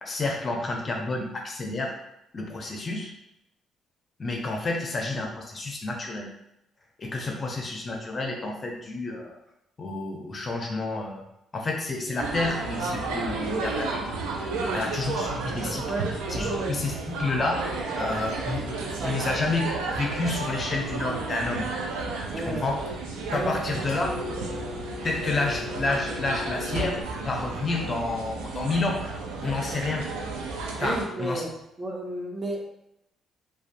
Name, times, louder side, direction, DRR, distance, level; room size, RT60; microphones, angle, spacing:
voice 1, 0.0-1.9 2.3-3.1 4.2-6.3 7.0-9.4 9.8-11.2 11.5-14.0 14.7-15.9 16.3-17.6 17.9-19.6 19.9-21.7 22.5-22.8 23.3-24.1 25.0-29.0 29.4-30.0 30.8-31.4, left 3 dB, 40° left, 1 dB, 0.6 m, -29 dB
sound 1, 12.2-31.0, right 3 dB, 85° right, 0.4 m, -32 dB
voice 2, 14.5-14.9 15.9-16.8 19.0-19.3 22.3-22.7 23.3-23.9 30.8-31.5 31.8-32.6, right 1 dB, 30° right, 0 dB, 0.6 m, -33 dB
Engine, 19.9-27.0, left 5 dB, 90° left, 0.4 m, -41 dB
2.4 x 2.3 x 2.5 m, 0.82 s
supercardioid pair, 60°, 0 cm